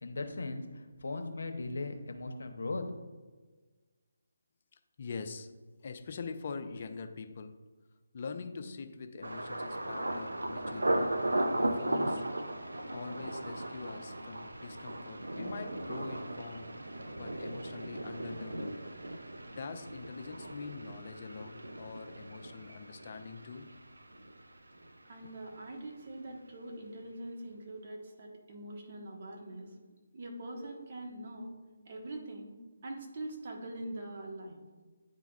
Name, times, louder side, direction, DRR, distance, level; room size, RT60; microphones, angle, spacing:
voice 1, 0.0-2.9, left 3 dB, 75° left, 6 dB, 0.9 m, -38 dB
voice 2, 4.7-5.5 5.8-7.7 8.1-11.1 11.6-12.2 12.9-16.7 17.2-18.9 19.6-23.7, left 5 dB, 45° left, 7 dB, 0.5 m, -44 dB
Thunder, 9.2-25.0 25.2-25.9 26.3-26.5, right 1 dB, 85° right, 0.6 m, -37 dB
voice 3, 25.0-29.7 30.1-31.5 31.8-32.6 32.8-34.6, right 1 dB, 45° right, 1 dB, 1.3 m, -43 dB
10.0 x 3.9 x 2.4 m, 1.3 s
figure-of-eight pair, 155°, 0 cm